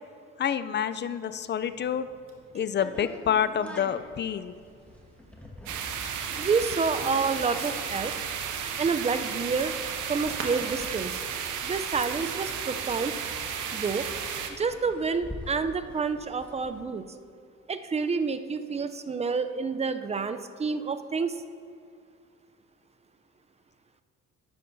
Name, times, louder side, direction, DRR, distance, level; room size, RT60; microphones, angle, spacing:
voice 1, 0.4-2.1 2.5-4.5, left 8 dB, 35° left, 13 dB, 0.4 m, -28 dB
Fireworks, 1.6-13.0, right 2 dB, 45° right, 1.6 m, -49 dB
sound 1, 2.8-12.3 12.6-12.7 12.9-16.8, left 1 dB, 5° left, 1.2 m, -46 dB
sound 2, 5.7-14.5, right 7 dB, 80° right, 0.8 m, -33 dB
voice 2, 6.4-8.1 8.8-9.7 10.1-11.2 11.6-13.1 13.7-14.1 14.6-17.0 17.7-21.4, right 5 dB, 20° right, 10 dB, 0.5 m, -28 dB
11.5 x 9.4 x 2.7 m, 2.3 s
cardioid pair, 90°, 30 cm